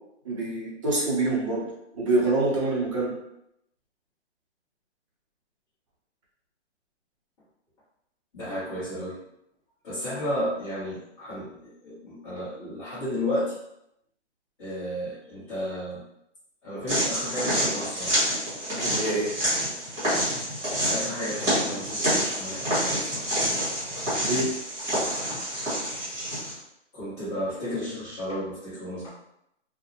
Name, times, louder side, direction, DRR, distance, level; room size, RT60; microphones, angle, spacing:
voice 1, 0.2-1.7 1.9-3.1 18.8-19.3 24.2-24.5, right 2 dB, 30° right, -4 dB, 0.6 m, -25 dB
voice 2, 8.3-9.2 9.8-13.6 14.6-16.0 16.6-18.2 20.9-23.3 26.9-29.1, equal, 25° left, -14 dB, 1.0 m, -33 dB
sound 1, 16.9-26.6, equal, 10° right, 1.0 m, -27 dB
2.6 x 2.1 x 2.7 m, 0.80 s
hypercardioid pair, 150°, 35 cm